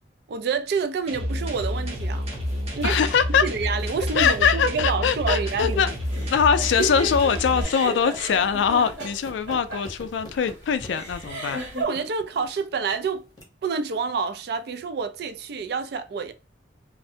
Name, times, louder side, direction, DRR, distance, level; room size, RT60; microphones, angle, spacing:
voice 1, 0.3-2.3 2.7-3.0 3.4-5.8 11.8-13.3 13.6-16.3, right 5 dB, 60° right, 0.3 m, -28 dB
sound 1, 1.1-7.6, left 1 dB, 35° right, 0.7 m, -29 dB
sound 2, 1.5-13.4, left 1 dB, 20° left, 0.7 m, -49 dB
voice 2, 2.8-3.5 4.1-5.9 6.3-11.6, left 7 dB, 80° left, 0.3 m, -22 dB
sound 3, 6.1-11.8, right 2 dB, 90° right, 1.4 m, -34 dB
2.5 x 2.1 x 2.6 m
head